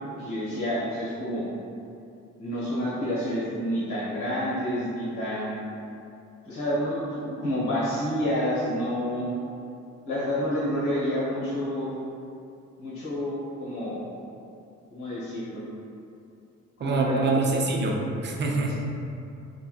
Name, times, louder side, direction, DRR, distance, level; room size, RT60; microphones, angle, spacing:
voice 1, 0.2-1.5 2.4-5.6 6.4-9.3 10.0-11.9 12.8-14.1 14.9-15.6 16.8-17.4, equal, 85° left, -8 dB, 1.3 m, -29 dB
voice 2, 16.8-18.7, right 3 dB, 35° right, 0 dB, 0.5 m, -25 dB
3.3 x 2.7 x 2.3 m, 2.6 s
cardioid pair, 90°, 30 cm